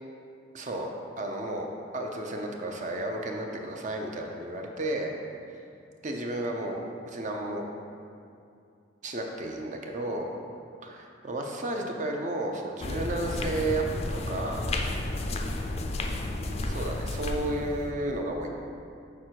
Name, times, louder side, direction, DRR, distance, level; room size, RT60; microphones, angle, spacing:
voice 1, 0.5-0.9 1.2-1.7 1.9-5.1 6.0-7.6 9.0-10.3 10.8-13.8 14.1-14.6 16.6-18.5, right 1 dB, 40° right, 2 dB, 0.6 m, -32 dB
sound 1, 12.8-17.9, left 2 dB, 30° left, 0.4 m, -32 dB
6.3 x 4.3 x 4.5 m, 2.5 s
head